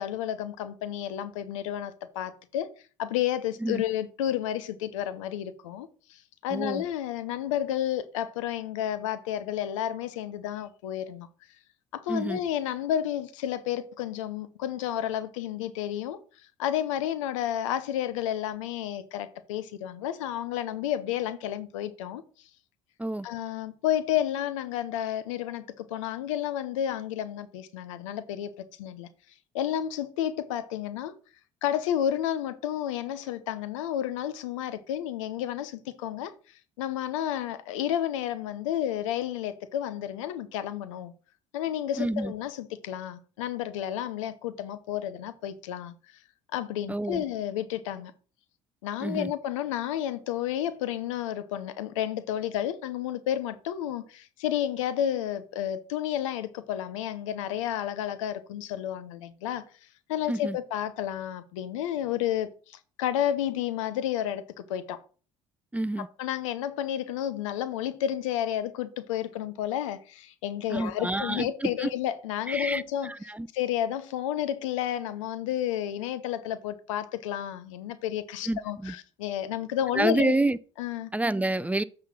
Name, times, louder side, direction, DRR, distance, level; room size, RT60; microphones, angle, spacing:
voice 1, 0.0-2.7 3.0-11.3 11.9-16.2 16.6-22.2 23.2-29.1 29.5-31.1 31.6-36.3 36.8-41.1 41.5-45.9 46.5-48.1 48.8-59.6 60.1-65.0 66.2-73.1 73.5-80.3 80.8-81.1, left 11 dB, 85° left, 0.8 m, -31 dB
voice 2, 6.5-6.8 12.1-12.4 23.0-23.3 42.0-42.3 46.9-47.2 49.0-49.3 60.3-60.6 65.7-66.1 70.7-71.9 72.5-73.5 78.5-78.9 79.9-80.6 81.1-81.8, right 2 dB, 10° right, 0.5 m, -28 dB
7.5 x 3.8 x 6.1 m
hypercardioid pair, 65°, 16 cm